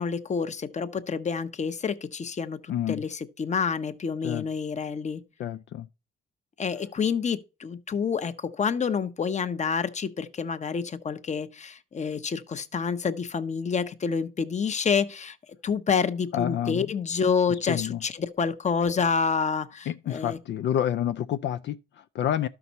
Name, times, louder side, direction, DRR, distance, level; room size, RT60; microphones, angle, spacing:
voice 1, 0.0-5.2 6.6-15.4 15.6-20.4, left 6 dB, 35° left, 0.9 m, -28 dB
voice 2, 2.7-3.0 4.2-4.5 5.4-5.9 16.3-16.9 17.5-18.0 19.9-22.5, left 10 dB, 65° left, 0.4 m, -29 dB
12.0 x 5.9 x 4.1 m
cardioid pair, 90°, 20 cm